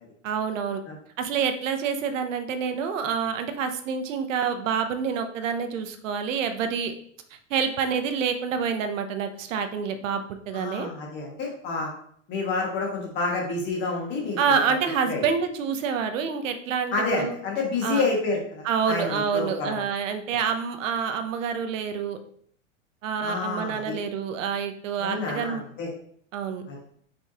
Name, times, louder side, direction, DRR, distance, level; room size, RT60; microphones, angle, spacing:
voice 1, 0.2-0.8 1.2-6.9 7.5-10.9 14.4-17.4 17.8-18.1 18.6-22.2 23.0-25.7 26.3-26.6, right 6 dB, 75° right, 8 dB, 0.8 m, -27 dB
voice 2, 10.5-11.9 12.3-14.6 15.0-15.2 16.9-19.9 23.2-23.9 25.0-25.9 26.7-26.8, left 3 dB, 30° left, -1 dB, 1.4 m, -29 dB
5.2 x 3.4 x 2.8 m, 0.63 s
supercardioid pair, 150°, 39 cm